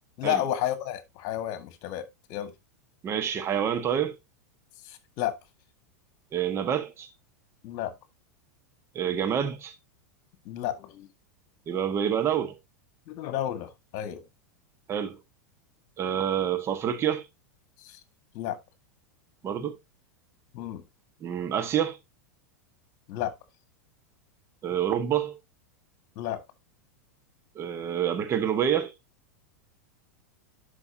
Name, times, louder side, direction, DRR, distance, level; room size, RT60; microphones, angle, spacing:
voice 1, 0.2-2.5 4.9-5.4 7.6-7.9 10.5-11.1 13.1-14.2 17.8-18.0 18.3-18.6 20.5-20.8 23.1-23.3 26.2-26.4, left 12 dB, 45° left, 1.8 m, -31 dB
voice 2, 3.0-4.1 6.3-7.1 8.9-9.7 11.7-12.6 14.9-15.2 16.0-17.3 19.4-19.8 21.2-22.0 24.6-25.4 27.5-28.9, right 9 dB, 30° right, 1.4 m, -27 dB
11.0 x 5.7 x 2.8 m
figure-of-eight pair, 90°, 9 cm